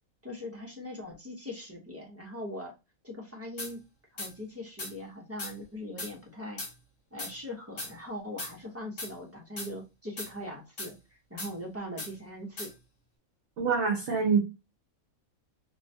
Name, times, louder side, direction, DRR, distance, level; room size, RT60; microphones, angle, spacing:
voice 1, 0.2-2.7 3.0-3.8 4.1-6.6 7.1-12.7, left 1 dB, 20° right, 0.4 m, -41 dB
sound 1, 3.6-3.7 4.2-4.3 4.8-4.9 5.4-5.5 6.0-6.1 6.6-6.7 7.2-7.3 7.8-7.9 8.4-8.5 9.0-9.1 9.6-9.7 10.2-10.3 10.8-10.9 11.4-11.5 12.0-12.1 12.6-12.7, left 2 dB, 60° left, 1.6 m, -38 dB
voice 2, 13.6-14.4, right 5 dB, 65° right, 0.8 m, -25 dB
2.8 x 2.1 x 2.6 m
omnidirectional pair, 1.5 m